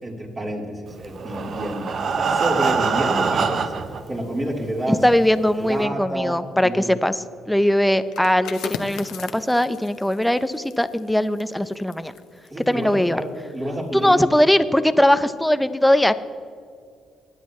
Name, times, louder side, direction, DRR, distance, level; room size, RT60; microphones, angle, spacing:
voice 1, 0.0-3.7 4.1-5.0 5.6-6.4 6.6-7.0 7.6-7.7 12.5-14.3, equal, 30° right, -3 dB, 3.8 m, -29 dB
Breathing, 1.1-4.0 4.8-4.9 5.2-5.3 5.8-5.9, right 5 dB, 55° right, 0.9 m, -23 dB
voice 2, 4.9-7.1 7.5-12.1 12.7-13.2 13.9-16.1, left 1 dB, 5° left, 12 dB, 0.6 m, -20 dB
sound 1, 8.0-13.5 13.9-14.1, left 7 dB, 80° left, 0.8 m, -38 dB
20.5 x 10.0 x 3.2 m, 2.3 s
cardioid pair, 90°, 0 cm